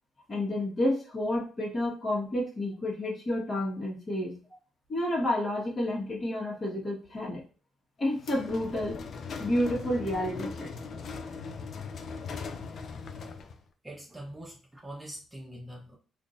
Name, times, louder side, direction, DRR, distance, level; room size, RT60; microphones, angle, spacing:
voice 1, 0.3-4.4 4.9-7.4 8.0-9.0 9.4-10.7, left 1 dB, 40° left, -3 dB, 1.5 m, -30 dB
sound 1, 8.2-13.6, left 5 dB, 60° left, 0.4 m, -39 dB
voice 2, 13.8-16.0, right 1 dB, 15° right, -1 dB, 0.9 m, -44 dB
3.7 x 2.6 x 2.5 m, 0.36 s
cardioid pair, 90°, 0 cm